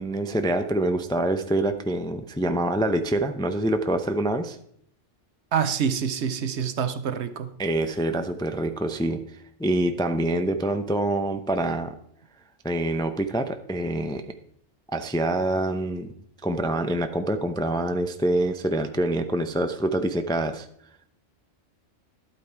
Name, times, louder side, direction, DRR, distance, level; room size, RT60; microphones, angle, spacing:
voice 1, 0.0-4.6 7.6-12.0 12.6-14.2 14.9-16.1 16.4-20.7, right 1 dB, 5° left, 7 dB, 0.4 m, -26 dB
voice 2, 5.5-7.5, right 7 dB, 65° right, 12 dB, 1.0 m, -26 dB
12.0 x 8.6 x 4.6 m, 0.66 s
omnidirectional pair, 1.3 m